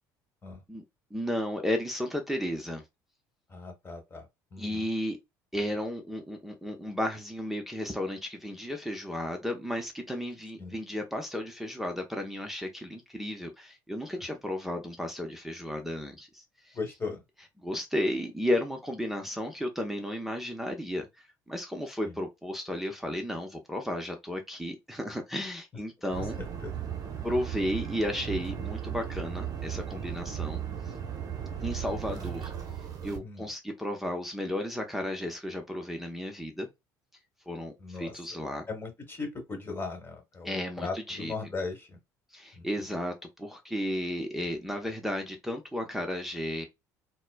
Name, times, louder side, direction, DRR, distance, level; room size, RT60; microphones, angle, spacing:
voice 1, 1.1-2.8 4.6-5.2 5.5-16.8 17.6-21.1 21.5-26.4 27.2-30.6 31.6-32.5 33.0-36.7 37.5-38.7 40.4-41.3 42.3-46.7, left 1 dB, 5° right, 0.8 m, -33 dB
voice 2, 3.5-4.9 10.6-10.8 16.7-17.2 22.0-22.2 26.2-26.3 26.6-26.7 32.1-32.3 33.2-33.5 37.8-38.2 38.7-42.0 42.5-42.7, left 4 dB, 25° left, 1.3 m, -38 dB
sound 1, 26.1-33.2, right 9 dB, 45° right, 0.8 m, -36 dB
4.1 x 2.1 x 2.2 m
hypercardioid pair, 70°, 9 cm